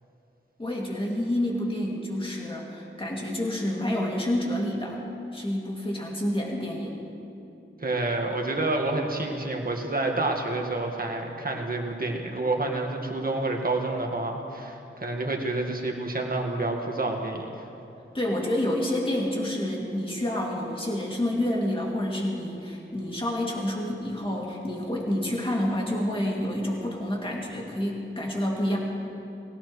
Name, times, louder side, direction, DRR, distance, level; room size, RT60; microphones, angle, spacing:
voice 1, 0.6-5.0 5.3-7.0 18.1-28.8, left 1 dB, 25° left, -3 dB, 2.5 m, -28 dB
voice 2, 7.8-17.6, right 2 dB, 45° right, 1 dB, 1.7 m, -28 dB
19.5 x 17.0 x 3.2 m, 2.8 s
wide cardioid pair, 85°, 21 cm